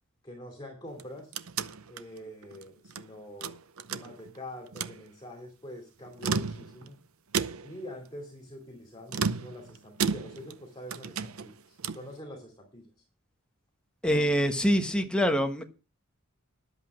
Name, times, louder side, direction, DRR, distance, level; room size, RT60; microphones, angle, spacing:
voice 1, 0.2-1.3 1.9-3.6 3.9-7.0 7.6-12.9, left 1 dB, 20° left, 2.6 m, -45 dB
sound 1, 0.9-3.1 3.4-4.4 4.7-5.0 6.0-6.9 7.3-7.9 9.1-10.6 10.9-12.1, right 5 dB, 70° right, 0.7 m, -33 dB
voice 2, 14.0-15.7, equal, 5° left, 1.2 m, -25 dB
11.0 x 8.1 x 6.2 m
head